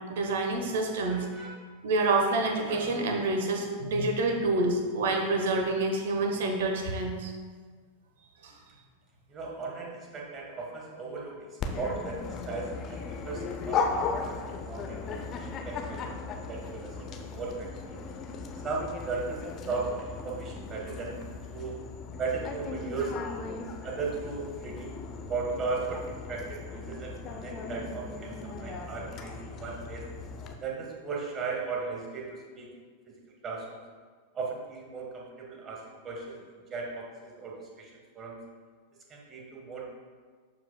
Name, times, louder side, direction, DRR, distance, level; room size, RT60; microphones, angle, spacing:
voice 1, 0.1-1.3 1.8-7.3 8.4-8.5, right 2 dB, 55° right, 3 dB, 1.0 m, -27 dB
voice 2, 1.1-1.6 9.3-16.1 16.5-18.0 18.6-21.2 21.5-21.8 22.2-23.1 23.8-25.0 25.3-30.0 30.6-33.8 34.3-37.9 38.1-38.4 39.1-39.8, right 4 dB, 25° right, -1 dB, 1.3 m, -37 dB
Dog, 11.6-30.5, left 4 dB, 30° left, 0.6 m, -37 dB
11.5 x 4.8 x 2.2 m, 1.5 s
figure-of-eight pair, 90°, 0 cm